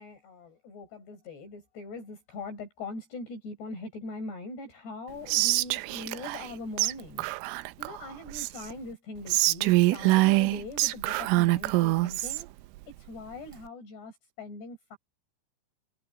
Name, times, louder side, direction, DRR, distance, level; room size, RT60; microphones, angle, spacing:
voice 1, 0.0-7.3 7.6-12.5 13.0-15.0, left 2 dB, 60° left, 8.1 m, -41 dB
Whispering, 5.3-6.5 6.8-6.9 7.2-8.7 9.3-12.4, right 20 dB, 85° right, 3.1 m, -25 dB
omnidirectional pair, 5.5 m